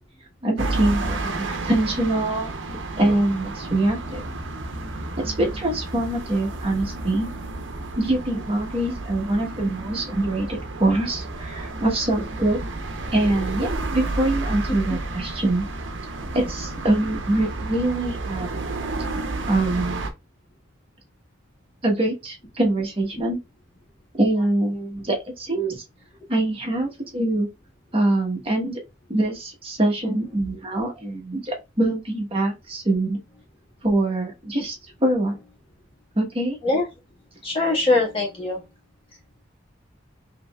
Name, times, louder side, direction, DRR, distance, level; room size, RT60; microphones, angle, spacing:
voice 1, 0.4-2.5 3.0-4.2 5.2-7.3 8.0-12.6 13.1-15.6 16.3-18.6 19.5-20.0 21.8-23.4 24.2-25.8 26.3-27.5 27.9-28.8 29.1-33.2 33.8-34.8 35.0-35.4 36.2-36.6, right 1 dB, 30° right, 1.1 m, -24 dB
sound 1, 0.6-20.1, right 2 dB, 80° right, 0.7 m, -31 dB
voice 2, 37.4-38.6, left 2 dB, 30° left, 1.5 m, -22 dB
5.0 x 2.9 x 2.3 m
head